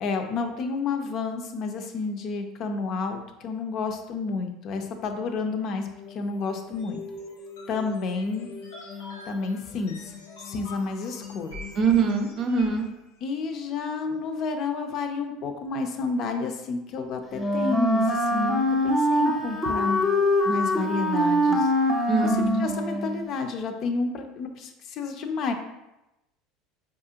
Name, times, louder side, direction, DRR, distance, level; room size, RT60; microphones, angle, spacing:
voice 1, 0.0-5.8 6.1-7.0 7.7-8.5 9.3-10.0 10.5-11.5 13.2-20.0 20.4-21.7 22.2-25.5, left 4 dB, 55° left, 5 dB, 0.5 m, -30 dB
sound 1, 5.7-12.9, left 3 dB, 90° left, 0.9 m, -42 dB
voice 2, 11.8-12.9 22.1-22.7, right 5 dB, 50° right, 4 dB, 0.5 m, -23 dB
Wind instrument woodwind instrument, 17.3-23.3, left 1 dB, 15° left, 0.7 m, -23 dB
4.7 x 2.5 x 2.8 m, 0.95 s
supercardioid pair, 95°, 0 cm